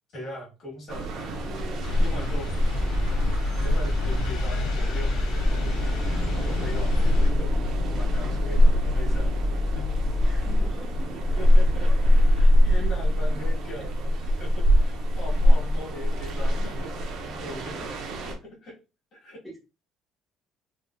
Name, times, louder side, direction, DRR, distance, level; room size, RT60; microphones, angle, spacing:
voice 1, 0.1-1.3 2.0-2.5 3.6-6.0 6.4-9.3 9.8-9.9 11.4-11.9 12.3-17.9 18.2-18.3 18.6-18.8 19.1-19.4, left 1 dB, 45° left, -3 dB, 1.7 m, -40 dB
sound 1, 0.9-18.3, equal, 55° right, 0.7 m, -23 dB
voice 2, 1.2-2.0 2.2-2.4 10.2-11.2 11.9-12.0 12.6-12.9 13.7-13.9 14.1-14.4 19.4-19.6, equal, 5° left, -6 dB, 0.9 m, -45 dB
sound 2, 1.8-7.3, left 1 dB, 85° left, 0.8 m, -34 dB
sound 3, 2.7-10.7, left 3 dB, 20° left, 0.5 m, -29 dB
3.6 x 2.6 x 2.2 m, 0.30 s
cardioid pair, 170°, 0 cm